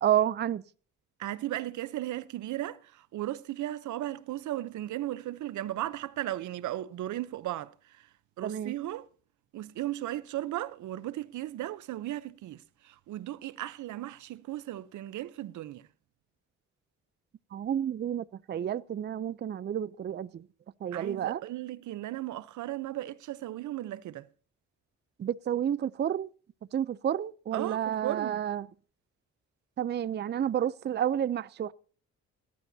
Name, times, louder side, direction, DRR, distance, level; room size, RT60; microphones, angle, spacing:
voice 1, 0.0-0.6 8.4-8.7 17.5-20.4 20.8-21.4 25.2-26.3 26.7-28.7 29.8-31.7, right 10 dB, 35° right, 0.5 m, -30 dB
voice 2, 1.2-8.0 8.4-9.1 9.5-15.9 20.9-24.3 27.5-28.4, right 14 dB, 75° right, 0.8 m, -36 dB
18.5 x 12.0 x 2.7 m
cardioid pair, 90°, 30 cm